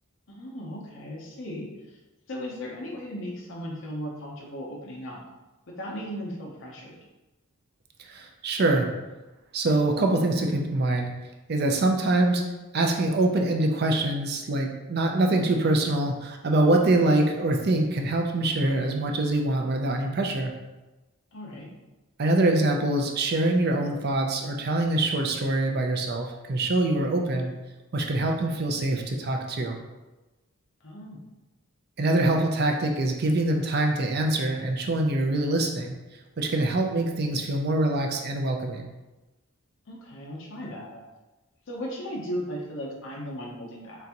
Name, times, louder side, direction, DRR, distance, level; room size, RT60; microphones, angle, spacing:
voice 1, 0.3-2.0 2.3-5.2 5.7-7.0 21.3-21.7 30.8-31.2 39.9-41.0 41.7-44.1, equal, 60° left, -2 dB, 0.7 m, -36 dB
voice 2, 8.1-8.9 9.5-11.1 11.5-12.4 12.7-20.5 22.2-27.5 27.9-29.8 32.0-36.0 36.4-38.9, right 2 dB, 45° right, 3 dB, 0.4 m, -24 dB
3.9 x 3.4 x 2.9 m, 1.1 s
head